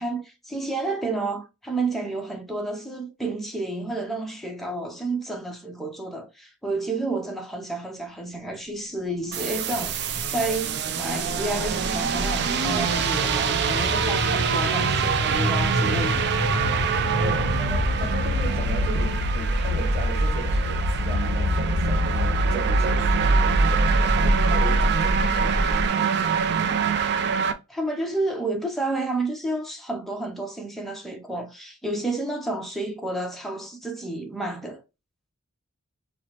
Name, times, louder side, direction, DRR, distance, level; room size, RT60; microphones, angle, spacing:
voice 1, 0.0-16.3 27.7-34.8, right 2 dB, ahead, 0.6 m, -30 dB
sound 1, 9.3-27.5, right 7 dB, 50° right, 0.4 m, -25 dB
sound 2, 10.0-25.9, left 1 dB, 45° left, 0.6 m, -26 dB
voice 2, 17.0-25.6, right 1 dB, 30° right, 1.3 m, -36 dB
4.7 x 2.0 x 2.8 m
head